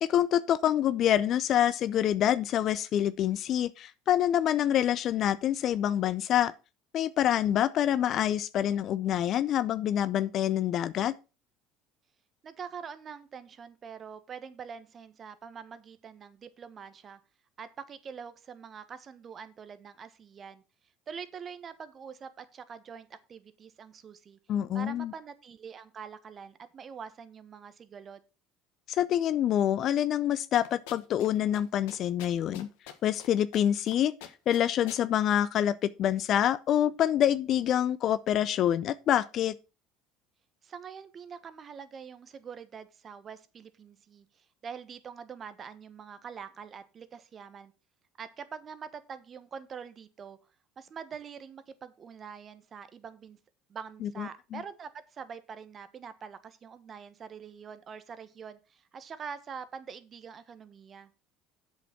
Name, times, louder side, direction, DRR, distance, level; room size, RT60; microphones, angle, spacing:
voice 1, 0.0-6.5 6.9-11.1 24.5-25.1 28.9-32.7 33.0-34.1 34.5-39.6 54.0-54.6, left 11 dB, 55° left, 0.5 m, -26 dB
voice 2, 12.4-17.2 17.6-20.6 21.1-24.4 24.7-28.2 40.6-47.7 48.2-50.4 50.8-53.4 53.7-61.1, right 6 dB, 40° right, 1.3 m, -44 dB
sound 1, 30.5-31.3 31.5-31.6 31.9-33.3 33.5-33.9 34.2-35.0, left 10 dB, 70° left, 1.4 m, -45 dB
8.1 x 6.5 x 5.8 m
hypercardioid pair, 70°, 0 cm